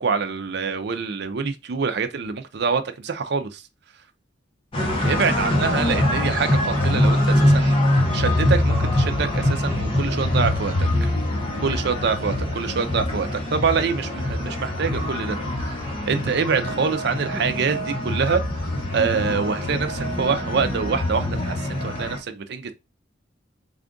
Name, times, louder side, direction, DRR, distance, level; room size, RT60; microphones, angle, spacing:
voice 1, 0.0-3.6 5.0-11.1 11.6-15.8 16.1-18.4 18.9-22.7, right 5 dB, 60° right, 0.5 m, -25 dB
sound 1, 4.7-22.2, left 1 dB, 30° left, 0.9 m, -23 dB
3.4 x 2.4 x 3.7 m
head